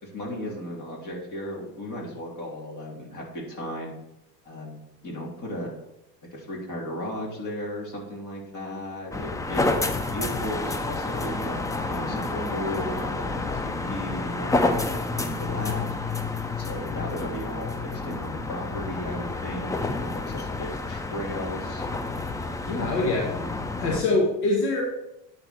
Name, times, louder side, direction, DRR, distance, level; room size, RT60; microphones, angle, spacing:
voice 1, 0.0-3.9 4.4-5.7 6.3-11.6 11.9-15.9 16.6-21.8 22.6-23.0, left 1 dB, 35° left, -2 dB, 3.3 m, -35 dB
sound 1, 9.1-24.0, left 3 dB, 10° left, 0.4 m, -29 dB
voice 2, 22.8-23.2 23.8-24.8, left 2 dB, 70° left, -3 dB, 1.9 m, -23 dB
11.0 x 4.3 x 4.4 m, 0.85 s
hypercardioid pair, 80°, 49 cm